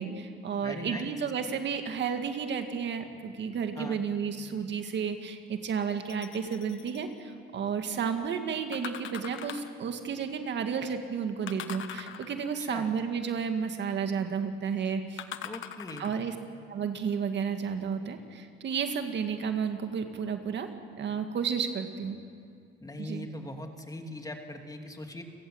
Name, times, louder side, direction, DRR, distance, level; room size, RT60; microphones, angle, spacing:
voice 1, 0.0-15.2 16.0-16.3 16.7-20.7 21.0-22.2 23.0-23.3, right 6 dB, 65° right, 6 dB, 2.0 m, -32 dB
voice 2, 0.6-1.1 3.8-4.0 12.6-12.9 15.4-16.2 22.8-25.2, left 1 dB, 20° left, 4 dB, 2.7 m, -40 dB
sound 1, 6.1-7.0 8.7-9.8 11.5-12.6 15.2-16.3 17.0-17.1, left 9 dB, 80° left, 1.3 m, -42 dB
29.5 x 17.5 x 8.0 m, 2.3 s
cardioid pair, 90°, 20 cm